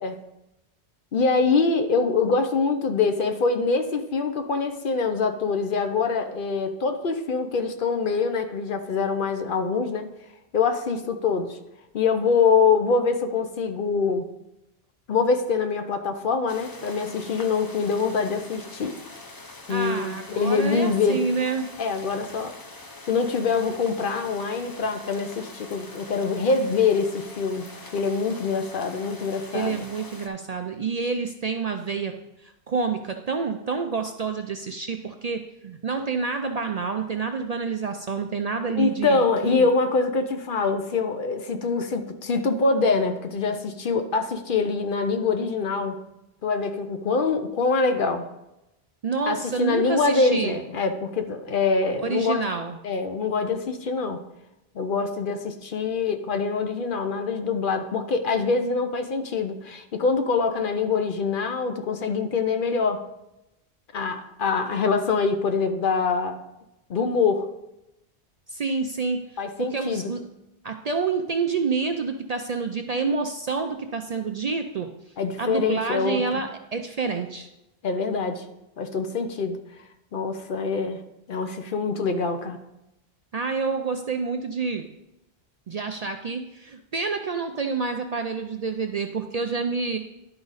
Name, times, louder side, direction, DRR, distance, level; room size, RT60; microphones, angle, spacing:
voice 1, 1.1-10.1 10.5-11.6 11.9-14.3 15.1-18.9 19.7-21.2 21.8-22.5 23.1-29.8 38.7-46.0 46.4-48.3 49.3-52.4 52.8-54.2 54.7-63.0 63.9-66.4 66.9-67.5 69.4-70.1 75.2-76.4 77.8-78.4 78.8-79.6 80.1-81.0 81.3-82.6, left 4 dB, 60° left, 7 dB, 0.8 m, -24 dB
sound 1, 16.5-30.3, left 2 dB, 25° left, 0.6 m, -43 dB
voice 2, 19.7-21.7 29.5-32.1 32.4-39.7 49.0-50.6 52.0-52.8 68.5-70.2 70.6-74.9 75.4-77.5 83.3-84.9 85.7-90.0, right 4 dB, 50° right, 5 dB, 0.5 m, -28 dB
11.0 x 4.8 x 4.0 m, 0.91 s
omnidirectional pair, 1.1 m